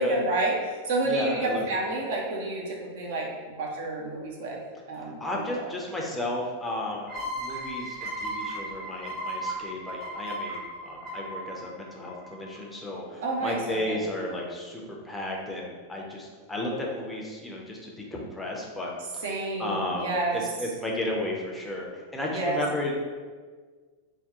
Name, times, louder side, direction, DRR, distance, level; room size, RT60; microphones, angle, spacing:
voice 1, 0.0-4.6 4.9-5.7 13.2-14.0 19.2-20.5 22.3-22.6, right 2 dB, 55° right, -2 dB, 0.6 m, -29 dB
voice 2, 1.1-1.8 5.2-19.2 19.6-22.9, left 1 dB, 10° left, -2 dB, 0.5 m, -33 dB
sound 1, 7.1-12.6, right 1 dB, 30° right, 1.0 m, -36 dB
2.7 x 2.2 x 3.5 m, 1.5 s
figure-of-eight pair, 90°, 0 cm